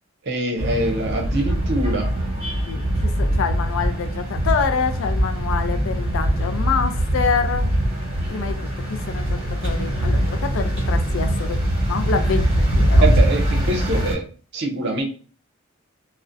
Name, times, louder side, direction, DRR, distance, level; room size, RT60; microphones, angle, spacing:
voice 1, 0.3-2.1 13.0-14.2 14.5-15.0, right 2 dB, 55° right, 2 dB, 0.5 m, -24 dB
sound 1, 0.6-14.1, equal, 30° right, 1.0 m, -22 dB
voice 2, 2.7-7.7 8.3-8.6 8.9-11.6 11.9-13.1, left 6 dB, 70° left, 8 dB, 0.3 m, -26 dB
2.4 x 2.1 x 2.4 m, 0.40 s
head